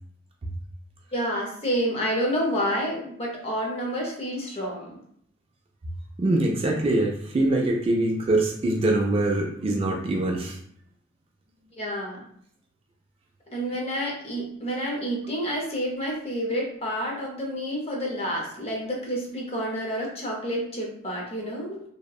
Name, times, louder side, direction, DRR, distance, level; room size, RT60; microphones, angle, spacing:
voice 1, 1.1-5.0 11.7-12.3 13.5-21.8, equal, 30° left, -2 dB, 0.7 m, -29 dB
voice 2, 6.2-10.6, right 2 dB, 30° right, 0 dB, 0.3 m, -23 dB
2.7 x 2.1 x 2.3 m, 0.65 s
head